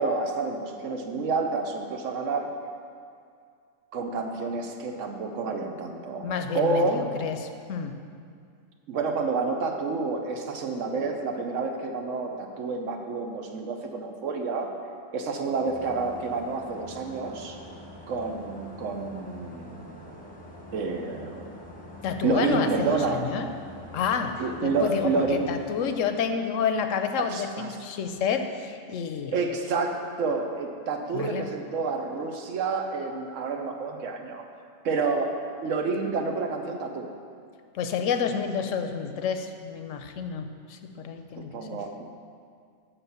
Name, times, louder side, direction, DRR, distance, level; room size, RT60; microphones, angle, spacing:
voice 1, 0.0-2.5 3.9-7.1 8.9-14.7 15.1-17.6 18.1-20.0 20.7-21.5 22.2-23.2 24.4-25.5 27.2-27.7 29.3-34.4 34.8-37.1 41.4-42.0, right 4 dB, 75° right, 4 dB, 1.1 m, -29 dB
voice 2, 6.2-7.9 22.0-23.5 23.9-29.3 31.1-31.4 37.7-41.8, left 6 dB, 80° left, 7 dB, 1.0 m, -29 dB
sound 1, 15.6-26.0, left 1 dB, 10° left, 0.8 m, -45 dB
7.1 x 5.7 x 6.9 m, 2.2 s
omnidirectional pair, 1.3 m